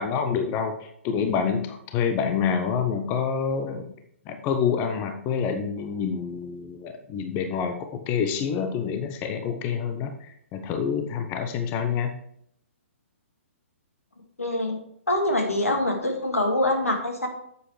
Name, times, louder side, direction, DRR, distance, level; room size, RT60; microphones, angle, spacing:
voice 1, 0.0-3.9 4.3-12.2, left 6 dB, 25° left, 6 dB, 0.8 m, -27 dB
voice 2, 14.4-14.8 15.1-17.3, left 1 dB, 90° left, 3 dB, 2.0 m, -24 dB
9.6 x 7.9 x 3.2 m, 0.69 s
figure-of-eight pair, 125°, 7 cm